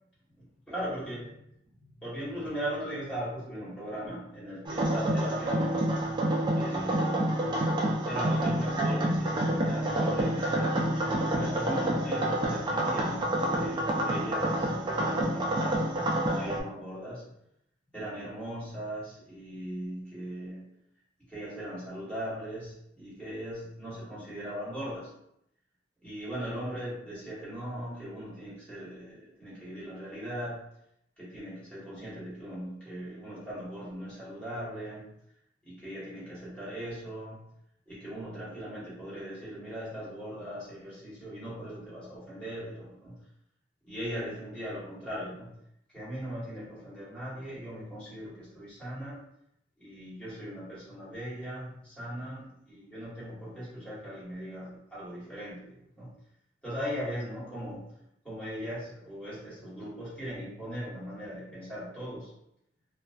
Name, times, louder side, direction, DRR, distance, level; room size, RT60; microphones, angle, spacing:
voice 1, 0.4-1.3 1.8-5.9 6.5-7.4 8.0-10.8 11.3-17.3 17.9-20.7 21.3-25.1 26.0-30.6 31.2-35.1 35.6-37.4 37.9-43.2 43.8-45.5 45.9-49.2 49.8-56.1 56.6-57.9 58.2-62.3, equal, 5° left, -11 dB, 1.2 m, -39 dB
sound 1, 4.7-16.6, right 1 dB, 25° right, 0.3 m, -28 dB
2.4 x 2.2 x 2.3 m, 0.78 s
head